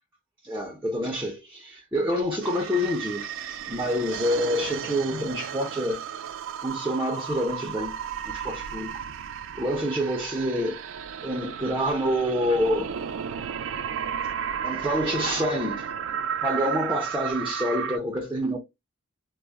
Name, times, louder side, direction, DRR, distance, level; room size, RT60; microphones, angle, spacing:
voice 1, 0.4-6.0 6.6-8.0 8.2-8.9 9.5-10.8 11.2-12.9 14.6-15.9 16.4-18.6, equal, 10° right, 0.5 m, -27 dB
sound 1, 2.4-18.0, right 8 dB, 65° right, 0.3 m, -33 dB
2.3 x 2.0 x 3.3 m
head